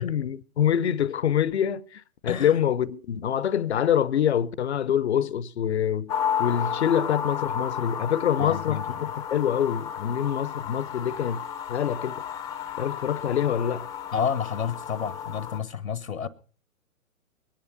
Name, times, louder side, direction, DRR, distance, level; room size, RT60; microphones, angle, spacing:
voice 1, 0.0-6.1 6.4-11.4 11.7-12.2 12.8-13.9, left 9 dB, 50° left, 0.8 m, -25 dB
sound 1, 6.1-15.6, left 8 dB, 10° left, 0.6 m, -33 dB
voice 2, 8.4-9.1 14.1-16.3, left 7 dB, 75° left, 1.2 m, -30 dB
22.5 x 10.5 x 5.3 m
figure-of-eight pair, 120°, 41 cm